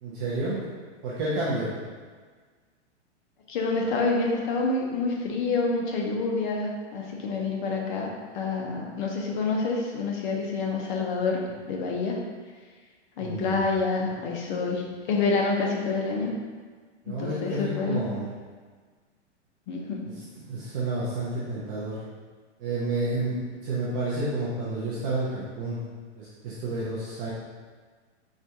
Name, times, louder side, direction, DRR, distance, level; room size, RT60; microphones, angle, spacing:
voice 1, 0.0-0.6 1.0-1.8 13.2-13.7 17.1-18.3 20.3-22.0 22.6-25.8 26.2-27.3, right 2 dB, 20° right, -8 dB, 0.3 m, -30 dB
voice 2, 3.5-11.4 11.7-12.2 13.2-16.3 17.2-18.0 19.7-20.0, left 4 dB, 40° left, -1 dB, 0.7 m, -27 dB
4.4 x 2.6 x 3.5 m, 1.5 s
hypercardioid pair, 145°, 36 cm